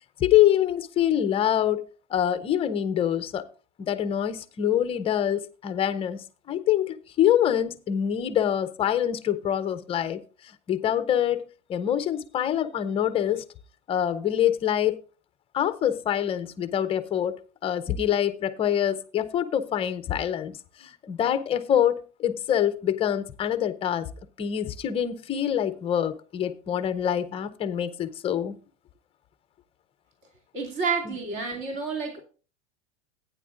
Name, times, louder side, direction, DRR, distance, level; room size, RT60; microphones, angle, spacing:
voice 1, 0.2-3.5 3.8-11.4 11.7-13.4 13.9-15.0 15.5-17.4 17.6-24.1 24.4-28.6 31.0-31.1, left 10 dB, 15° left, 0.5 m, -25 dB
voice 2, 30.5-32.2, right 5 dB, 40° right, 2.6 m, -29 dB
15.5 x 9.5 x 2.5 m
supercardioid pair, 150°, 35 cm